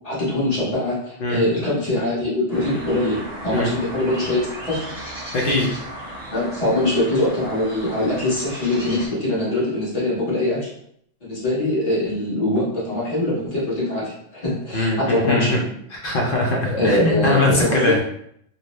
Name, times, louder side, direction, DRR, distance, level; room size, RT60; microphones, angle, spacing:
voice 1, 0.0-4.8 6.3-10.7 11.2-15.6 16.6-18.0, left 1 dB, 35° left, -8 dB, 1.1 m, -23 dB
sound 1, 2.5-9.1, equal, 40° right, 0.8 m, -35 dB
voice 2, 5.3-5.7 14.7-15.6 15.9-18.0, left 2 dB, 60° left, -1 dB, 0.6 m, -21 dB
2.6 x 2.0 x 2.9 m, 0.70 s
omnidirectional pair, 1.2 m